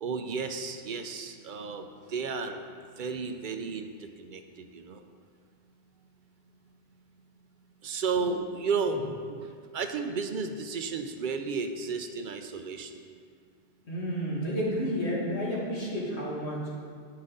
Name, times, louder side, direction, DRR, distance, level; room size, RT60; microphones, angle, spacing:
voice 1, 0.0-2.6 3.0-5.0 7.8-9.0 9.7-12.9, right 5 dB, 60° right, 6 dB, 0.6 m, -33 dB
voice 2, 13.8-16.7, equal, 80° left, -5 dB, 1.9 m, -31 dB
9.3 x 5.8 x 3.7 m, 2.1 s
omnidirectional pair, 1.1 m